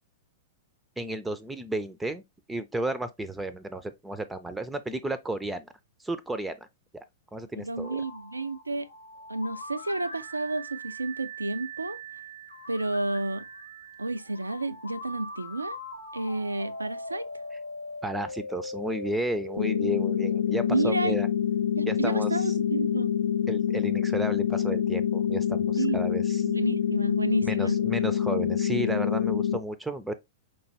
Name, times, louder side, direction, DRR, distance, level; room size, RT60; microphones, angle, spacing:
voice 1, 1.0-2.2 2.5-5.7 6.0-6.6 6.9-7.0 7.3-8.0 18.0-21.3 21.9-22.5 23.5-26.4 27.5-30.1, right 1 dB, 10° right, 0.4 m, -33 dB
voice 2, 7.6-8.9 9.3-12.0 12.7-13.4 14.0-15.8 16.1-17.3 20.6-21.2 21.8-23.1 25.8-26.0 26.4-27.8, right 2 dB, 90° right, 0.3 m, -30 dB
sound 1, 7.8-21.7, left 1 dB, 90° left, 0.8 m, -41 dB
sound 2, 19.6-29.6, left 9 dB, 65° left, 0.3 m, -26 dB
5.0 x 3.0 x 2.9 m
figure-of-eight pair, 100°, 0 cm